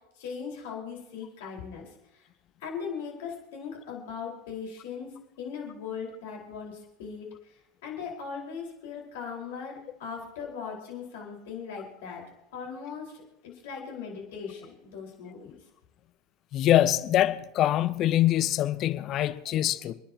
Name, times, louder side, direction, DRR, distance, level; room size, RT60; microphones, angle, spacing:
voice 1, 0.1-2.3 2.6-12.2 12.5-15.6, left 6 dB, 65° left, 4.7 m, -39 dB
voice 2, 16.5-19.9, left 13 dB, 45° left, 0.9 m, -24 dB
30.0 x 10.0 x 2.9 m
hypercardioid pair, 80°, 0 cm